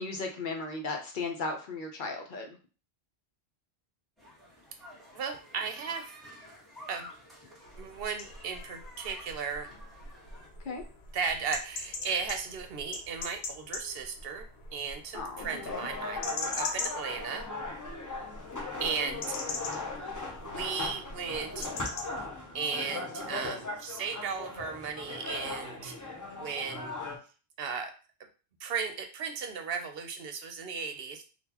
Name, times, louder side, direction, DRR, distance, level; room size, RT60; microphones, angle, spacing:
voice 1, 0.0-2.6 10.6-10.8 15.1-15.9, left 3 dB, 55° left, 2 dB, 0.8 m, -36 dB
sound 1, 4.2-10.5, left 1 dB, ahead, 1.4 m, -51 dB
voice 2, 5.1-6.2 6.9-7.1 7.7-9.7 11.1-14.5 14.7-17.4 18.8-19.4 20.4-21.7 22.5-27.0 27.6-27.9 28.6-31.2, right 6 dB, 70° right, 5 dB, 0.8 m, -36 dB
sound 2, 7.6-22.2, left 3 dB, 90° left, 0.9 m, -42 dB
sound 3, 15.4-27.2, left 3 dB, 20° left, 0.6 m, -38 dB
3.7 x 2.3 x 2.9 m, 0.35 s
omnidirectional pair, 1.0 m